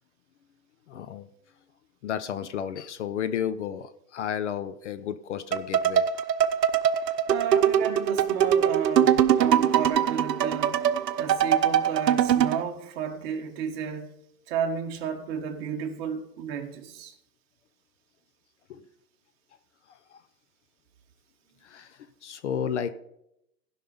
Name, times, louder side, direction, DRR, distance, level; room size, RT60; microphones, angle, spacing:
voice 1, 0.9-1.3 2.0-6.0 18.7-18.8 21.6-22.9, left 8 dB, 45° left, 0.6 m, -32 dB
sound 1, 5.5-12.6, right 9 dB, 70° right, 1.0 m, -22 dB
voice 2, 7.3-10.8 11.2-14.1 14.5-17.1, right 7 dB, 35° right, 1.6 m, -32 dB
15.5 x 5.5 x 5.5 m
hypercardioid pair, 145°, 50 cm